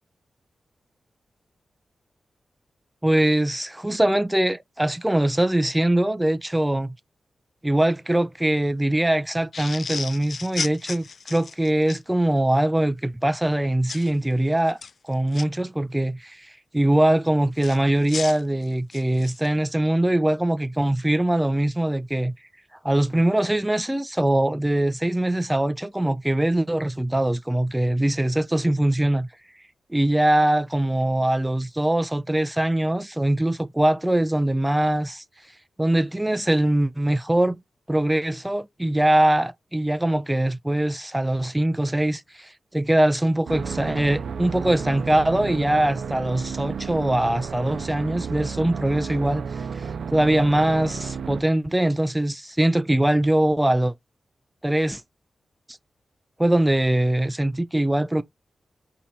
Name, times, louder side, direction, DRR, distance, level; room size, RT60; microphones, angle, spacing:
voice 1, 3.0-6.9 7.6-14.8 15.0-22.3 22.8-29.3 29.9-35.2 35.8-37.6 37.9-53.9 54.6-55.0 55.7-55.8 56.4-58.2, right 1 dB, 10° right, 0.4 m, -22 dB
sound 1, 9.5-12.0 13.9-14.1 14.7-15.4 17.6-19.5, left 5 dB, 60° left, 0.3 m, -34 dB
sound 2, 43.5-51.4, right 6 dB, 85° right, 0.4 m, -32 dB
4.6 x 2.8 x 4.0 m
cardioid pair, 85°, 0 cm